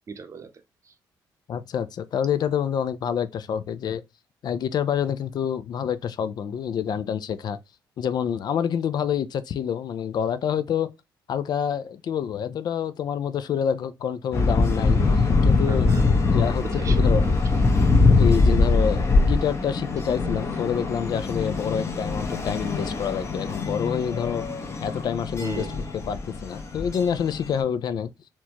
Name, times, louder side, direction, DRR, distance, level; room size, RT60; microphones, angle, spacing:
voice 1, 0.1-0.5 15.7-17.6 25.4-25.9, right 5 dB, 40° right, 0.6 m, -38 dB
voice 2, 1.5-4.0 4.4-7.6 8.0-10.9 11.3-16.0 16.3-17.2 18.2-24.5 24.8-25.7 26.0-28.1, left 8 dB, 55° left, 0.3 m, -27 dB
sound 1, 14.3-27.6, left 3 dB, 35° left, 0.8 m, -22 dB
4.4 x 2.2 x 2.8 m
cardioid pair, 90°, 8 cm